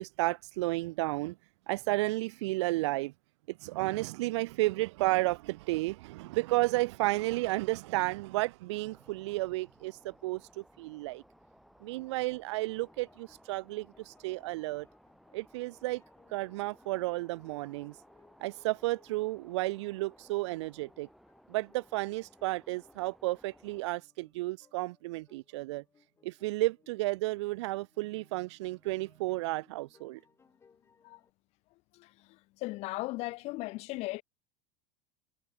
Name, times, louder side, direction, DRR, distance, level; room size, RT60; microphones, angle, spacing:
voice 1, 0.0-1.4 1.7-3.1 3.5-11.2 11.8-14.9 15.3-16.0 16.3-17.9 18.4-21.1 21.5-25.8 26.2-30.2, right 20 dB, 85° right, 0.7 m, -32 dB
sound 1, 8.7-23.9, equal, ahead, 2.8 m, -61 dB
sound 2, 12.4-31.3, left 5 dB, 20° left, 6.3 m, -67 dB
voice 2, 31.9-34.2, left 21 dB, 50° left, 1.0 m, -37 dB
supercardioid pair, 145°, 14 cm